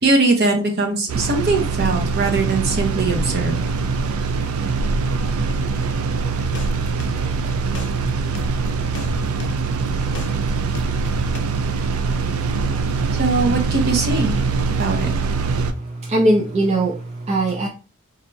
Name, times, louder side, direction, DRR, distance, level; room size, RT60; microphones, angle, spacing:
voice 1, 0.0-3.5 13.2-14.3 14.8-15.1, right 3 dB, 50° right, 2 dB, 0.9 m, -20 dB
sound 1, 1.1-15.7, right 4 dB, 85° right, 0.4 m, -23 dB
sound 2, 6.4-10.3 10.7-11.4, left 2 dB, 55° left, 0.6 m, -34 dB
voice 2, 15.5-17.7, right 1 dB, 30° right, -1 dB, 0.5 m, -21 dB
4.3 x 2.6 x 2.7 m, 0.35 s
head